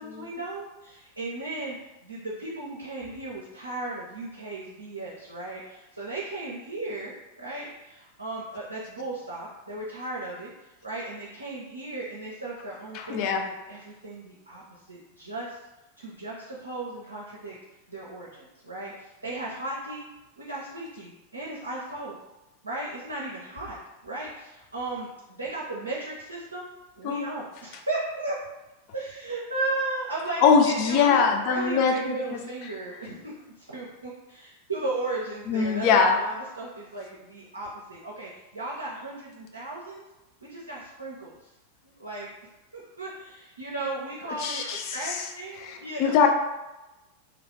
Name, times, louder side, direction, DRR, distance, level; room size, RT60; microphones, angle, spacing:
voice 1, 0.0-1.8 2.0-15.6 16.0-17.5 17.9-20.0 20.4-22.2 22.6-23.8 24.0-26.7 27.0-28.4 28.9-40.0 40.4-41.5 42.0-42.3 42.7-46.2, right 2 dB, 80° right, -5 dB, 0.4 m, -36 dB
voice 2, 12.9-13.4 27.0-27.2 30.4-32.4 35.5-36.2 44.4-45.2 45.7-46.3, left 6 dB, 45° left, 3 dB, 0.4 m, -22 dB
2.4 x 2.3 x 3.1 m, 1.0 s
figure-of-eight pair, 90°, 0 cm